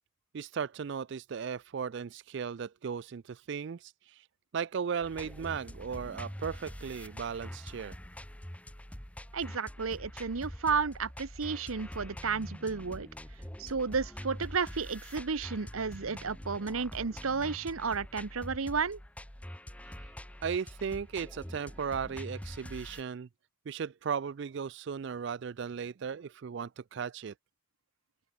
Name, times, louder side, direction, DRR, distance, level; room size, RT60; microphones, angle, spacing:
voice 1, 0.3-4.3 4.5-8.0 20.0-20.1 20.4-23.3 23.7-27.3, right 6 dB, 55° right, 0.4 m, -36 dB
sound 1, 5.0-23.0, equal, 5° left, 1.5 m, -45 dB
voice 2, 9.3-13.1 13.6-19.0, right 5 dB, 80° right, 0.9 m, -32 dB
open air
head